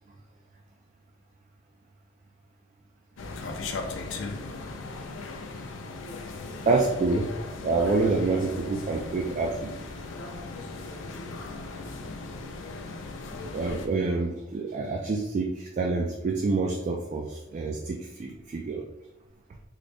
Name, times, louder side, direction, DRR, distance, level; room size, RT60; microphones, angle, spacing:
sound 1, 3.2-13.9, left 3 dB, 75° left, 0.4 m, -37 dB
voice 1, 6.7-7.3 7.6-9.7 13.5-18.8, right 3 dB, 40° right, 1 dB, 0.3 m, -27 dB
3.8 x 2.0 x 3.3 m, 0.93 s
head